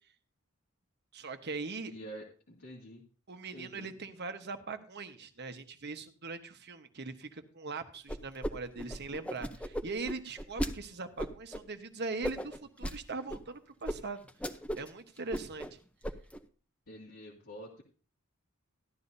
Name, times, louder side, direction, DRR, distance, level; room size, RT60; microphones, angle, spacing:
voice 1, 1.1-1.9 3.3-14.2 14.7-15.8, right 3 dB, 50° right, 8 dB, 1.2 m, -41 dB
voice 2, 1.9-3.0 3.5-3.9 16.9-17.8, equal, 80° left, -5 dB, 2.2 m, -47 dB
sound 1, 8.1-8.5 8.8-10.7 11.2-11.6 12.2-13.0 13.3-13.4 13.9-14.0 14.3-14.9 15.2-15.7 16.0-16.4, equal, 5° left, 0.7 m, -36 dB
14.5 x 11.5 x 2.7 m, 0.38 s
head